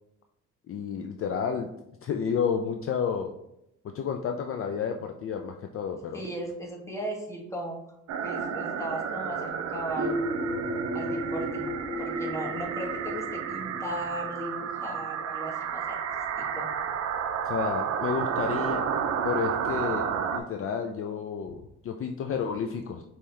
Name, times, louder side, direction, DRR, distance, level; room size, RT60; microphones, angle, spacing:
voice 1, 0.7-1.7 2.0-3.3 3.9-6.2 17.5-18.8 19.2-23.0, left 6 dB, 50° left, 4 dB, 0.4 m, -31 dB
voice 2, 6.1-7.9 8.2-10.2 10.9-11.7 12.0-16.0 16.4-16.7, right 1 dB, 10° left, -1 dB, 1.2 m, -36 dB
sound 1, 8.1-20.4, right 7 dB, 60° right, 0.5 m, -31 dB
sound 2, 10.0-15.5, right 1 dB, 20° right, 1.3 m, -34 dB
5.3 x 2.9 x 3.2 m, 0.81 s
cardioid pair, 90°, 30 cm